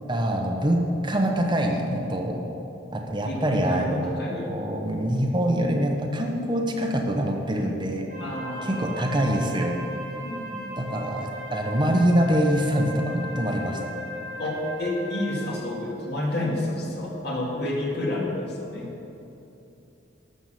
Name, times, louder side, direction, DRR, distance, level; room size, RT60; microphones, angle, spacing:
voice 1, 0.1-2.4 2.9-8.1 8.6-9.8 10.8-13.9, equal, 25° right, 2 dB, 1.0 m, -25 dB
voice 2, 3.2-4.6 8.2-9.1 10.2-10.7 14.4-18.9, left 1 dB, 60° left, -2 dB, 2.3 m, -30 dB
Wind instrument woodwind instrument, 8.1-15.7, equal, 40° right, 2.9 m, -37 dB
12.0 x 6.9 x 7.6 m, 2.9 s
head